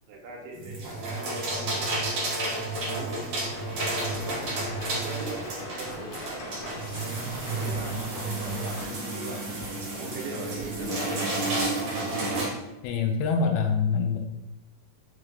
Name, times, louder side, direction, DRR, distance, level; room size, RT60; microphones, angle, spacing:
voice 1, 0.1-3.2 3.8-6.7 7.5-11.6, right 2 dB, 80° right, -1 dB, 2.8 m, -41 dB
sound 1, 0.5-12.5, right 2 dB, 65° right, 1.5 m, -31 dB
sound 2, 3.5-8.9, left 1 dB, 65° left, 2.2 m, -40 dB
voice 2, 12.8-14.2, left 5 dB, 85° left, 4 dB, 2.4 m, -25 dB
6.3 x 2.4 x 3.2 m, 0.93 s
omnidirectional pair, 4.5 m